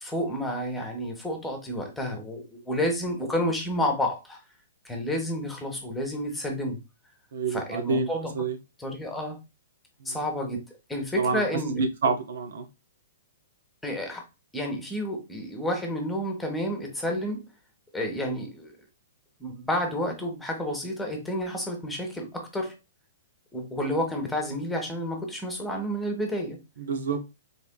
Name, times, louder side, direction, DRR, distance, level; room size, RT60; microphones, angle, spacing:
voice 1, 0.0-4.4 4.8-6.8 7.5-8.3 8.8-9.4 10.0-10.6 10.9-11.8 13.8-14.2 14.5-17.4 17.9-18.7 19.4-22.8 23.5-26.6, equal, 5° left, 1.3 m, -30 dB
voice 2, 7.3-8.6 10.0-10.2 11.2-11.4 11.8-12.7 26.8-27.3, right 4 dB, 70° right, 0.8 m, -28 dB
4.1 x 3.5 x 2.2 m
hypercardioid pair, 130°, 0 cm